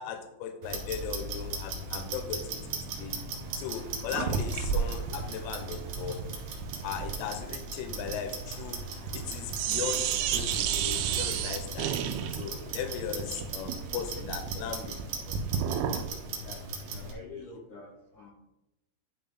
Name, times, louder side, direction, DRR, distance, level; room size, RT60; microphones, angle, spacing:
voice 1, 0.0-2.7 3.0-3.1 3.6-6.2 6.8-8.8 9.1-11.9 12.4-15.4 15.7-15.8 16.5-16.6 17.4-17.5, left 8 dB, 90° left, 7 dB, 3.2 m, -38 dB
Clock, 0.6-17.1, right 4 dB, 65° right, 2.5 m, -39 dB
sound 1, 4.1-9.3 9.5-16.1, right 8 dB, 85° right, 3.2 m, -32 dB
voice 2, 16.4-18.3, left 3 dB, 70° left, -3 dB, 1.9 m, -47 dB
12.0 x 4.0 x 3.9 m, 0.92 s
omnidirectional pair, 5.6 m